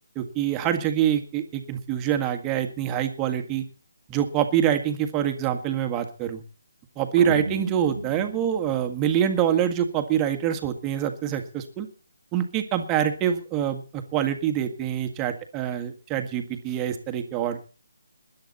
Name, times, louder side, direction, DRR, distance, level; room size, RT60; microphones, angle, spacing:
voice 1, 0.1-3.6 4.1-6.4 7.0-11.9 12.3-17.7, right 10 dB, 15° right, 6 dB, 1.7 m, -25 dB
sound 1, 7.2-9.6, right 4 dB, 70° right, 0.8 m, -34 dB
20.5 x 10.5 x 4.3 m, 0.39 s
figure-of-eight pair, 155°, 0 cm